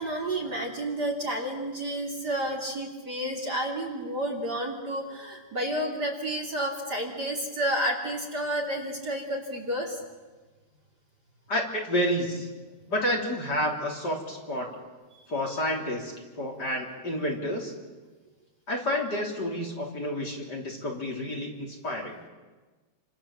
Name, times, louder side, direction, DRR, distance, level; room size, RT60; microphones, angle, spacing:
voice 1, 0.0-10.0 15.1-15.2, right 1 dB, 35° right, 2 dB, 3.2 m, -31 dB
voice 2, 11.5-12.5 12.9-14.7 15.3-17.7 18.7-22.2, equal, 35° left, 0 dB, 3.8 m, -30 dB
29.0 x 25.5 x 7.3 m, 1.3 s
omnidirectional pair, 3.4 m